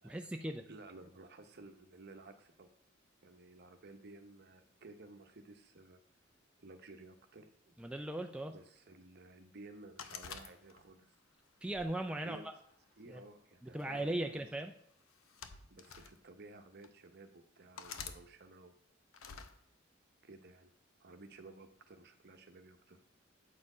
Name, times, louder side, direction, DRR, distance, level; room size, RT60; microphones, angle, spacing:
voice 1, 0.0-0.7 7.8-8.5 11.6-12.5 13.1-13.2 13.6-14.7, right 1 dB, 5° right, 4 dB, 0.3 m, -38 dB
voice 2, 0.7-2.7 3.2-6.0 6.6-7.9 8.5-11.1 12.2-12.5 13.0-14.4 15.7-18.7 20.2-20.7 21.0-23.0, right 2 dB, 55° right, 7 dB, 0.8 m, -55 dB
sound 1, 10.0-11.0 11.7-12.8 13.8-14.1 15.1-16.1 16.8-16.9 17.8-18.2 19.1-19.5, left 6 dB, 90° left, 0.6 m, -48 dB
8.3 x 4.4 x 4.9 m, 0.70 s
head